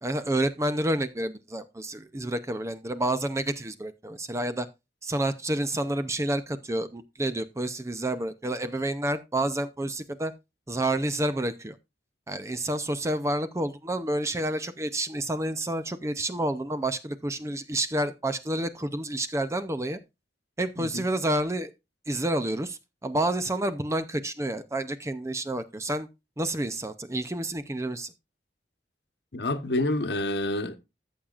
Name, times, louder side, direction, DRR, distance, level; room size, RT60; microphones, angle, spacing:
voice 1, 0.0-4.7 5.0-10.3 10.7-11.8 12.3-20.0 20.6-21.7 22.1-26.1 26.4-28.1, right 1 dB, 15° right, 0.5 m, -29 dB
voice 2, 29.3-30.8, left 2 dB, 65° left, 1.1 m, -28 dB
13.5 x 7.1 x 2.4 m
head